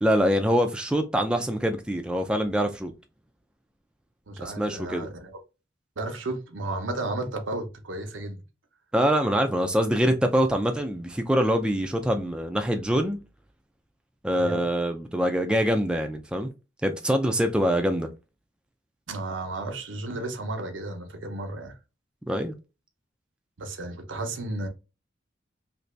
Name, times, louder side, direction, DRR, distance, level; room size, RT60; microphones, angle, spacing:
voice 1, 0.0-2.9 4.4-5.1 8.9-13.2 14.2-16.5 16.8-18.1 22.3-22.5, equal, 5° right, 0.3 m, -24 dB
voice 2, 4.3-5.3 6.0-8.4 14.3-14.6 19.1-21.8 23.6-24.7, right 2 dB, 85° right, 0.8 m, -33 dB
2.9 x 2.6 x 3.2 m
head